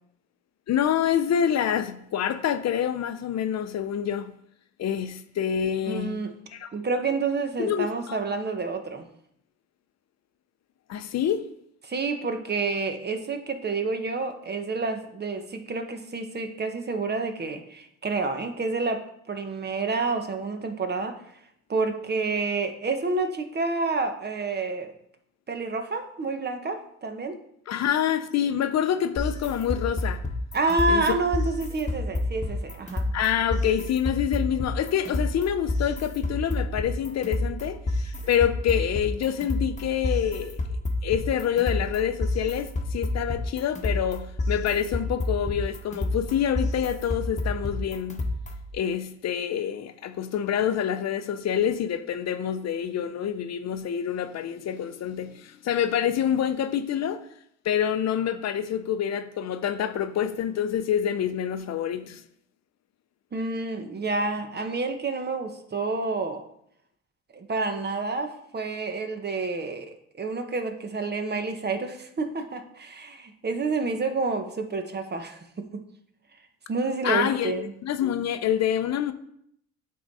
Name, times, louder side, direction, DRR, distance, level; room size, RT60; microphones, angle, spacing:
voice 1, 0.7-4.3 4.8-6.2 6.5-6.7 7.6-8.2 10.9-11.4 27.7-30.2 30.9-31.2 33.1-40.6 41.0-48.3 48.7-57.2 57.6-62.2 77.0-79.1, left 9 dB, 60° left, 0.6 m, -27 dB
voice 2, 5.9-6.3 6.7-9.1 11.8-21.2 21.7-24.9 25.5-27.4 30.5-33.1 63.3-66.4 67.3-75.8 76.7-77.7, right 3 dB, 35° right, 1.0 m, -29 dB
sound 1, 29.2-48.7, left 2 dB, 25° left, 1.1 m, -30 dB
8.3 x 3.8 x 4.1 m
cardioid pair, 90°, 30 cm